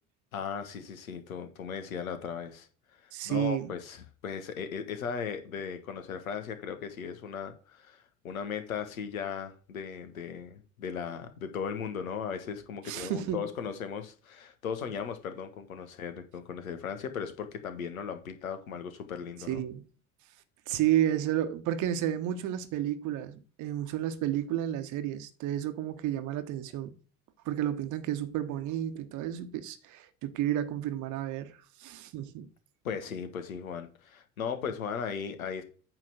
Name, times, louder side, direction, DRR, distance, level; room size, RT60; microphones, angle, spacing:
voice 1, 0.3-2.7 3.0-19.6 32.8-35.6, left 7 dB, 70° left, 1.4 m, -37 dB
voice 2, 3.1-3.7 12.9-13.4 19.5-19.8 20.7-26.9 27.4-32.5, right 11 dB, 45° right, 1.2 m, -31 dB
8.8 x 3.5 x 6.8 m
figure-of-eight pair, 70°, 42 cm